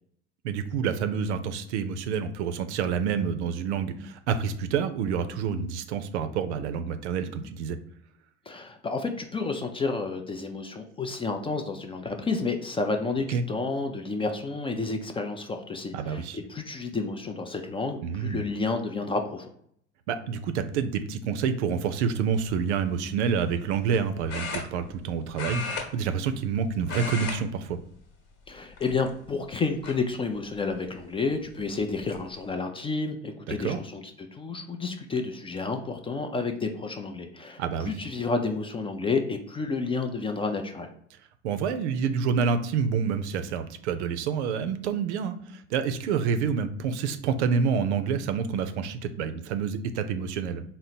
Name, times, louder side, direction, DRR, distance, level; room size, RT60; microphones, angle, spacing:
voice 1, 0.4-7.8 13.3-13.4 15.9-16.4 18.0-18.4 20.1-27.8 33.5-33.8 37.6-37.9 41.4-50.6, right 6 dB, 75° right, 9 dB, 0.5 m, -28 dB
voice 2, 8.5-19.5 28.5-34.0 34.3-40.9, left 4 dB, 15° left, 5 dB, 0.4 m, -30 dB
sound 1, 22.4-22.6 24.3-25.1 25.3-26.6 26.8-27.4 27.7-28.0 28.7-29.3 29.8-29.9 31.4-31.5 31.8-32.2, left 4 dB, 50° left, 1.2 m, -35 dB
3.8 x 2.0 x 4.1 m, 0.66 s
hypercardioid pair, 70°, 35 cm